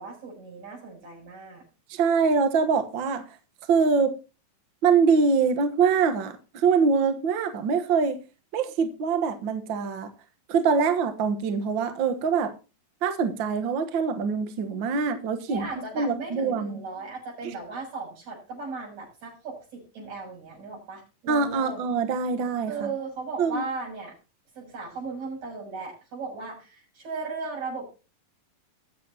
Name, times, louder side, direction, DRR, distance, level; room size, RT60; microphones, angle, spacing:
voice 1, 0.0-1.6 15.5-21.9 22.7-24.2 24.6-27.9, right 4 dB, 50° right, 8.6 m, -36 dB
voice 2, 1.9-3.2 3.7-4.1 4.8-8.2 8.5-10.1 10.5-12.5 13.0-15.7 15.9-16.8 21.3-22.7 23.4-23.6, right 5 dB, 70° right, 1.1 m, -24 dB
21.5 x 7.5 x 2.8 m
omnidirectional pair, 4.0 m